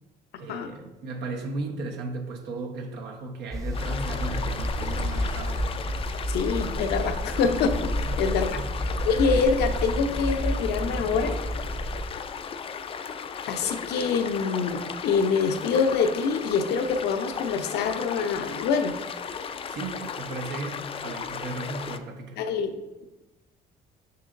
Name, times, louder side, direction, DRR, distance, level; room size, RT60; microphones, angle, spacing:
voice 1, 0.4-5.8 8.0-8.7 19.7-22.4, right 3 dB, 80° right, 1 dB, 1.1 m, -36 dB
sound 1, 3.5-12.0, equal, 20° right, 0.9 m, -30 dB
sound 2, 3.7-22.0, left 6 dB, 35° left, 0.4 m, -36 dB
voice 2, 6.3-8.6 9.1-11.4 13.5-18.9 22.4-22.7, left 5 dB, 75° left, 7 dB, 0.7 m, -25 dB
6.8 x 6.0 x 2.6 m, 1.0 s
cardioid pair, 110°, 17 cm